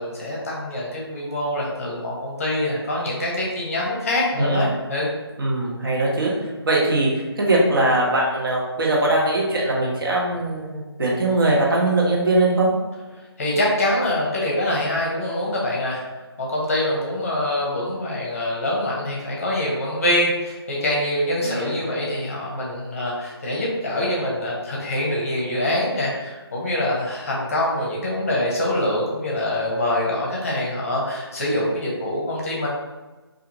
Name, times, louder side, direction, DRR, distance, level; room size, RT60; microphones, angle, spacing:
voice 1, 0.0-5.1 13.4-16.0 16.4-32.7, left 1 dB, 35° left, -4 dB, 0.7 m, -24 dB
voice 2, 4.4-4.7 5.4-12.7 21.4-21.7, right 2 dB, 55° right, -3 dB, 0.8 m, -21 dB
2.4 x 2.4 x 2.8 m, 1.2 s
figure-of-eight pair, 160°, 14 cm